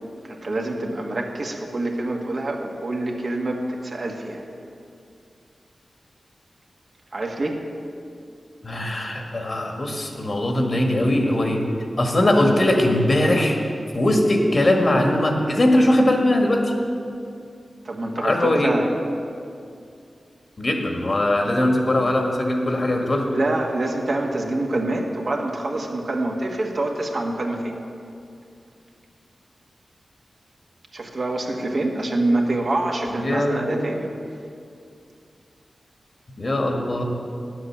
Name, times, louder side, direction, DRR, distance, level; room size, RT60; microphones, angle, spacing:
voice 1, 0.2-4.4 7.1-7.6 17.8-18.8 23.2-27.8 30.9-34.1, right 2 dB, 60° right, 0 dB, 1.5 m, -26 dB
voice 2, 8.6-11.6 12.0-13.6 13.9-16.7 18.2-18.7 20.6-23.3 33.2-34.0 36.4-37.0, left 1 dB, 50° left, 2 dB, 1.6 m, -20 dB
9.8 x 7.8 x 7.4 m, 2.4 s
cardioid pair, 60°, 0 cm